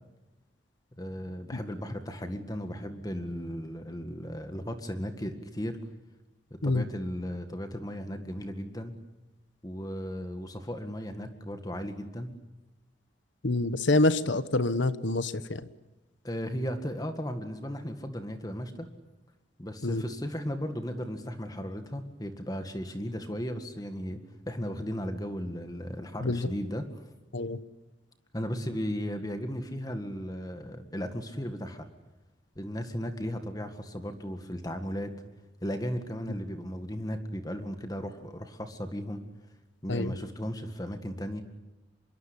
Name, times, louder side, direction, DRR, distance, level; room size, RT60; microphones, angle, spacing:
voice 1, 1.0-5.8 6.5-8.9 9.6-12.4 16.2-18.9 19.6-26.9 28.3-31.9 32.6-35.1 35.6-39.2 39.8-41.4, equal, 20° left, 7 dB, 1.9 m, -36 dB
voice 2, 13.4-15.7 19.8-20.0 26.2-26.5 27.3-27.6 39.9-40.1, left 2 dB, 70° left, 14 dB, 1.2 m, -26 dB
26.0 x 22.5 x 9.9 m, 1.0 s
head